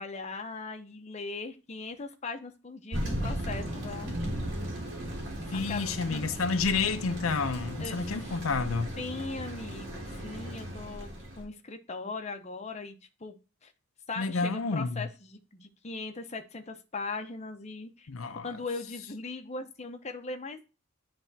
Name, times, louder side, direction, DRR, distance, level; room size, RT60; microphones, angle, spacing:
voice 1, 0.0-4.2 5.5-6.3 7.8-8.3 9.0-11.1 11.4-13.4 13.6-13.7 14.1-18.1 18.4-20.7, left 3 dB, 35° left, 0.8 m, -39 dB
Thunder, 2.9-11.4, equal, 65° right, 2.6 m, -36 dB
voice 2, 5.5-8.9 14.2-15.1 18.1-18.5, left 4 dB, 85° left, 0.7 m, -30 dB
10.0 x 3.4 x 2.8 m
head